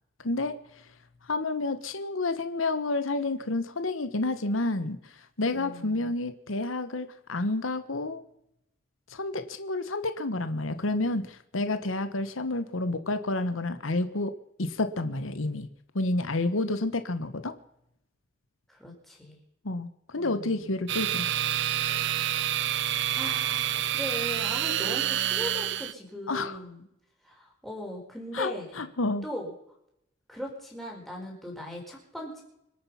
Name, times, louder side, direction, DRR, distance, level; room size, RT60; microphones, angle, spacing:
voice 1, 0.2-0.6 1.3-5.0 5.4-8.2 9.1-14.3 14.6-15.7 15.9-17.5 19.6-21.3 26.3-26.6 28.3-29.2, left 2 dB, 85° left, 11 dB, 1.3 m, -29 dB
voice 2, 5.5-6.1 18.7-19.4 20.1-20.7 23.1-26.8 27.2-28.9 29.2-29.5 30.3-32.4, left 1 dB, ahead, -2 dB, 4.8 m, -39 dB
sound 1, 20.9-25.9, right 11 dB, 60° right, 0.6 m, -28 dB
26.0 x 8.9 x 5.7 m, 0.79 s
head